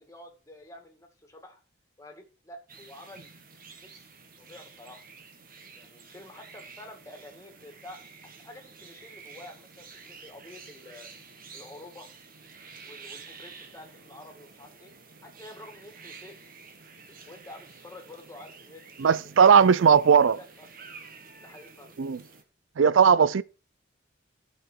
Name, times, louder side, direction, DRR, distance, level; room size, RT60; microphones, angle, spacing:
voice 1, 0.0-1.6 2.0-3.3 3.8-4.1 4.4-5.0 5.7-8.0 8.4-11.1 11.5-12.1 12.8-14.9 15.2-16.3 17.1-19.2 20.3-20.7 21.4-21.9 23.1-23.3, left 1 dB, 15° left, 2.1 m, -48 dB
sound 1, 2.7-22.4, right 5 dB, 45° right, 1.6 m, -50 dB
voice 2, 19.0-20.4 22.0-22.2 22.8-23.4, right 6 dB, 70° right, 0.4 m, -18 dB
13.5 x 6.1 x 4.5 m
head